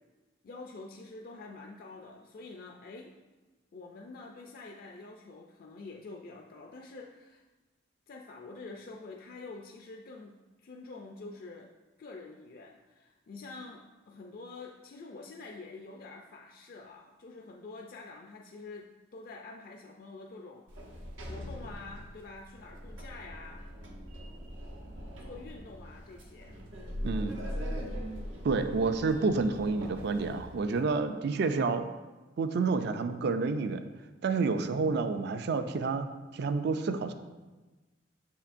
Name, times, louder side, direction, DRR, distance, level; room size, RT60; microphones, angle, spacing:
voice 1, 0.4-3.2 3.7-7.4 8.1-11.7 12.0-20.7 21.3-23.7 25.2-26.6, left 3 dB, 50° left, 1 dB, 0.4 m, -47 dB
Sliding door, 20.7-30.8, equal, 90° right, 0.9 m, -41 dB
voice 2, 27.0-27.4 28.4-31.8 32.4-33.8 34.2-36.1 36.3-37.1, right 4 dB, 60° right, 9 dB, 0.4 m, -29 dB
6.6 x 5.7 x 2.5 m, 1.2 s
head